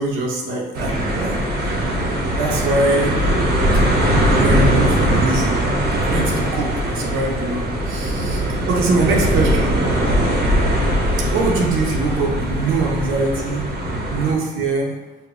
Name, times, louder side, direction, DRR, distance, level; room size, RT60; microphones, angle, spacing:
voice 1, 0.0-1.4 2.4-3.2 4.3-5.6 5.9-9.8 11.3-13.6 14.1-15.0, right 3 dB, 90° right, -2 dB, 0.8 m, -22 dB
sound 1, 0.7-14.3, equal, 50° right, 0.8 m, -20 dB
4.8 x 2.2 x 2.5 m, 1.2 s
cardioid pair, 90°, 20 cm